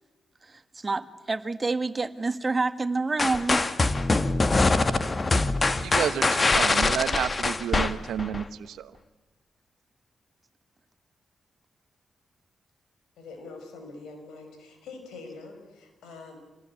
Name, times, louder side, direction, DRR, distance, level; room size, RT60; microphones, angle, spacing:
voice 1, 0.4-3.6, right 3 dB, 35° right, 10 dB, 1.7 m, -28 dB
sound 1, 3.2-8.4, left 3 dB, 40° left, 1.7 m, -23 dB
voice 2, 5.8-9.0, right 9 dB, 80° right, 13 dB, 1.0 m, -30 dB
voice 3, 13.2-16.4, left 3 dB, 85° left, 6 dB, 5.5 m, -44 dB
27.0 x 19.5 x 9.8 m, 1.2 s
supercardioid pair, 40°, 0 cm